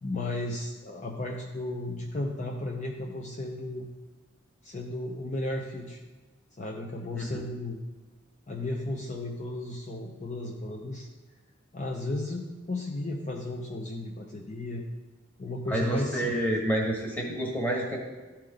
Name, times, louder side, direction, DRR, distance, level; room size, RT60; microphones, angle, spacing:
voice 1, 0.0-3.9 4.6-6.0 6.6-7.8 8.5-11.1 11.7-14.8 15.4-16.4, left 2 dB, 40° left, 0 dB, 0.6 m, -34 dB
voice 2, 15.7-18.0, right 1 dB, 10° left, -1 dB, 1.5 m, -28 dB
13.0 x 4.4 x 3.8 m, 1.3 s
head